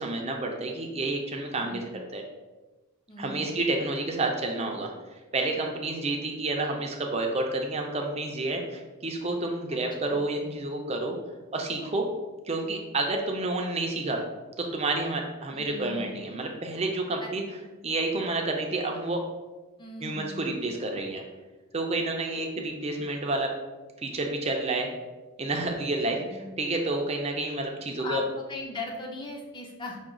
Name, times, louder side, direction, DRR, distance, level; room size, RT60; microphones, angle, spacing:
voice 1, 0.0-1.8 2.1-2.2 3.2-11.2 11.5-12.1 12.4-14.2 14.7-17.4 17.8-19.2 20.0-21.2 21.7-23.5 24.0-24.9 25.4-28.2, right 2 dB, 30° right, 2 dB, 0.5 m, -29 dB
voice 2, 1.6-1.9 3.1-3.6 10.0-10.2 15.5-16.2 17.2-17.3 19.8-20.6 26.2-26.6 28.0-30.0, left 2 dB, 20° left, 0 dB, 0.6 m, -39 dB
5.7 x 2.3 x 3.7 m, 1.2 s
head